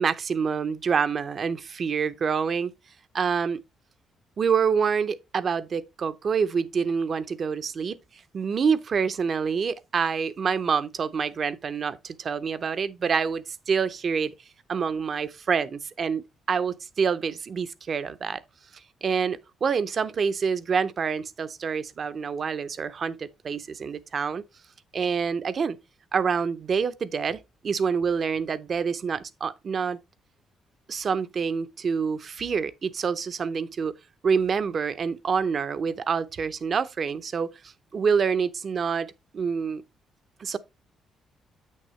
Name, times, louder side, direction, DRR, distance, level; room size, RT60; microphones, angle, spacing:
voice 1, 0.0-2.7 3.1-3.6 4.4-8.0 8.3-14.3 14.7-18.4 19.0-24.4 24.9-25.8 26.1-30.0 30.9-33.9 34.2-37.5 37.9-39.8 40.4-40.6, right 6 dB, 50° right, 0.7 m, -27 dB
8.3 x 6.5 x 3.2 m
cardioid pair, 90°, 0 cm